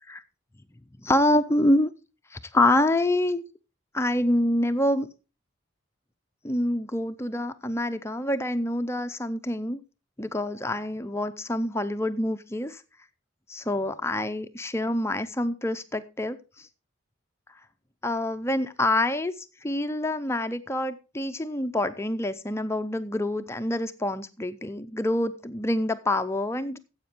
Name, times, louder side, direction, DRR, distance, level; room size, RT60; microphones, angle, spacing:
voice 1, 1.0-1.9 2.3-3.4 3.9-5.1 6.4-9.8 10.2-12.8 13.5-16.7 18.0-26.8, left 1 dB, 15° left, 9 dB, 0.5 m, -26 dB
14.5 x 8.0 x 4.5 m, 0.31 s
head